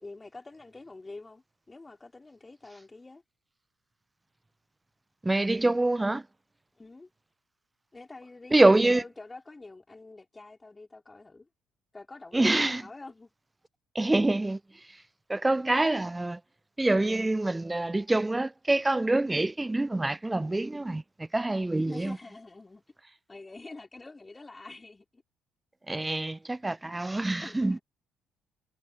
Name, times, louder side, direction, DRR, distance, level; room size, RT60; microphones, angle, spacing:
voice 1, 0.0-3.2 6.8-7.1 7.9-11.5 11.9-13.3 21.7-22.8 23.3-25.2 27.4-27.8, left 3 dB, 20° left, 2.8 m, -46 dB
voice 2, 5.2-6.2 8.5-9.0 12.3-12.8 14.0-14.6 15.3-16.4 16.8-22.2 25.9-27.8, right 2 dB, 15° right, 0.4 m, -25 dB
figure-of-eight pair, 45°, 0 cm